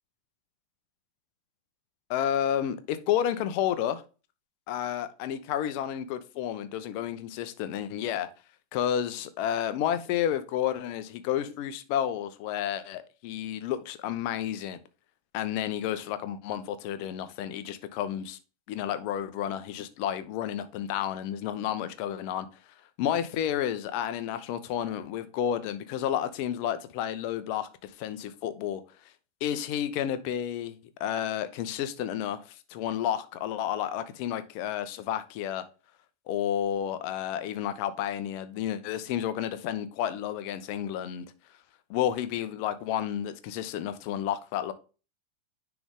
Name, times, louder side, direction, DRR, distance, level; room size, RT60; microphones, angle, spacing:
voice 1, 2.1-4.0 4.7-8.3 8.7-14.8 15.3-18.4 18.7-22.5 23.0-28.8 29.4-35.6 36.3-41.3 41.9-44.7, left 10 dB, 45° left, 0.8 m, -31 dB
10.0 x 3.5 x 3.6 m
figure-of-eight pair, 90°, 0 cm